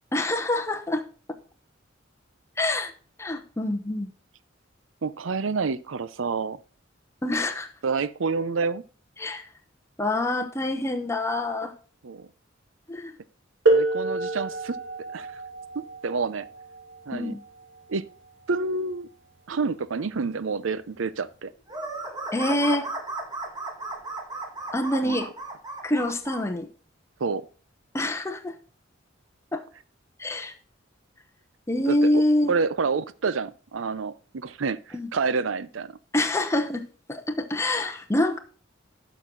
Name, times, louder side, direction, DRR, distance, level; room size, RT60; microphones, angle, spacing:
voice 1, 0.1-1.0 2.6-2.9 3.2-4.1 7.2-7.7 9.2-9.5 10.0-11.7 12.9-13.1 17.1-17.4 22.3-22.9 24.7-25.3 25.8-26.7 27.9-28.6 29.5-29.6 30.2-30.5 31.7-32.5 34.9-35.1 36.1-36.8 37.1-38.4, left 1 dB, 15° left, 0.9 m, -26 dB
voice 2, 5.0-6.6 7.8-8.8 12.0-12.3 13.7-14.8 15.1-15.4 15.7-16.5 17.1-17.4 17.9-18.1 18.5-19.1 19.5-21.5 25.0-25.2 27.2-27.4 31.9-32.2 32.5-35.9, right 4 dB, 85° right, 0.6 m, -28 dB
sound 1, 13.7-19.1 20.1-20.2 21.1-21.3, right 2 dB, 65° right, 2.5 m, -28 dB
sound 2, 21.7-26.4, right 2 dB, 20° right, 1.9 m, -35 dB
12.0 x 6.1 x 3.8 m
head